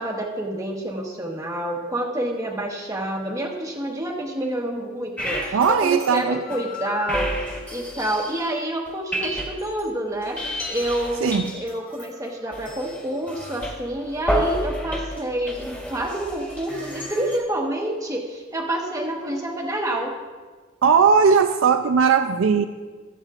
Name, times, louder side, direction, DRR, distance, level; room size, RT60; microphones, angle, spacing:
voice 1, 0.0-7.3 7.7-10.4 10.7-20.1, right 1 dB, 15° right, 0 dB, 1.2 m, -28 dB
sound 1, 5.2-5.7 6.0-8.5 8.9-9.9 10.2-17.4, equal, 10° left, 1.7 m, -30 dB
voice 2, 5.5-6.4 11.2-11.5 20.8-22.6, right 6 dB, 75° right, 8 dB, 0.4 m, -18 dB
21.5 x 8.1 x 2.5 m, 1.4 s
head